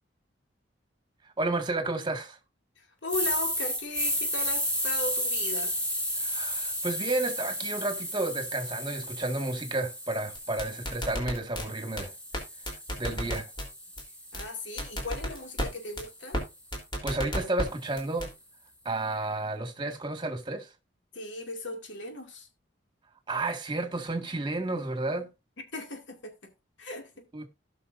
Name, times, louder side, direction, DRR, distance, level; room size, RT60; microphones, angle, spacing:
voice 1, 1.4-2.4 6.2-12.1 13.0-13.5 17.0-18.3 18.9-20.7 23.3-25.3 27.3-27.4, right 2 dB, 25° right, 1.8 m, -31 dB
voice 2, 2.8-5.7 13.1-13.4 14.3-16.4 21.1-22.5 25.6-26.5 26.8-27.5, left 2 dB, 75° left, 2.4 m, -37 dB
sound 1, 3.1-11.2 11.6-15.8, equal, 5° left, 4.0 m, -33 dB
sound 2, 10.3-11.6 12.0-12.1 12.3-12.4 12.7-13.7 14.0-14.1 14.3-14.4 14.8-15.7 16.0-16.1 16.3-16.4 16.7-17.7 18.0-18.3, equal, 25° left, 3.4 m, -31 dB
18.0 x 6.0 x 2.6 m
head